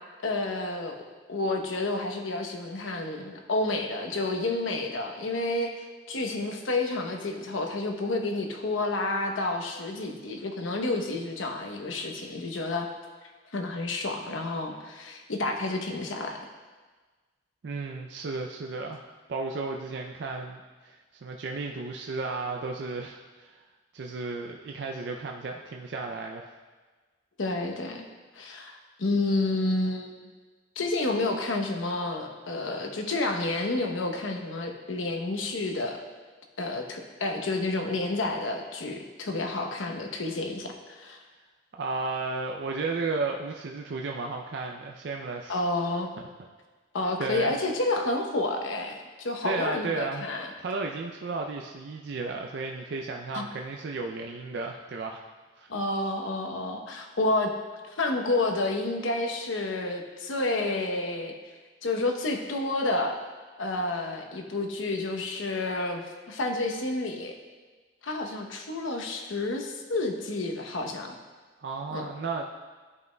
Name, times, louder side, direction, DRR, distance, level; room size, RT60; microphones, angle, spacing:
voice 1, 0.2-0.9 1.3-5.7 6.1-12.9 13.5-16.4 27.4-28.1 28.3-30.3 30.8-36.0 36.6-41.2 45.5-46.1 46.9-50.5 53.3-53.5 55.7-57.5 57.8-61.3 61.8-63.2 63.6-67.3 68.0-71.1 71.9-72.1, left 2 dB, 90° left, 4 dB, 0.8 m, -30 dB
voice 2, 17.6-23.6 23.9-26.5 41.7-45.6 47.2-47.5 49.4-50.3 50.6-55.2 55.6-55.7 71.6-72.4, right 3 dB, 60° right, 2 dB, 0.4 m, -34 dB
12.0 x 5.3 x 2.2 m, 1.4 s
head